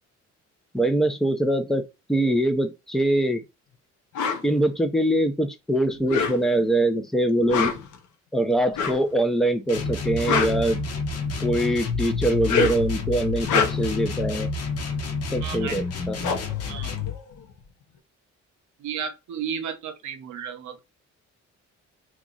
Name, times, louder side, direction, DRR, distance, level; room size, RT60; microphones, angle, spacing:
voice 1, 0.7-3.4 4.4-7.7 8.3-10.8 11.4-14.5 15.3-16.2, right 1 dB, ahead, 0.5 m, -23 dB
sound 1, 4.1-4.4 5.9-6.7 7.4-8.0 8.7-9.1 10.0-11.3 12.3-12.9 13.3-14.0 15.6-15.7 15.9-17.6, left 6 dB, 75° left, 0.8 m, -26 dB
sound 2, 9.7-17.2, left 4 dB, 50° left, 1.0 m, -29 dB
voice 2, 15.4-15.8 16.7-17.0 18.8-20.8, right 7 dB, 70° right, 0.8 m, -33 dB
3.0 x 2.4 x 3.8 m
cardioid pair, 90°, 30 cm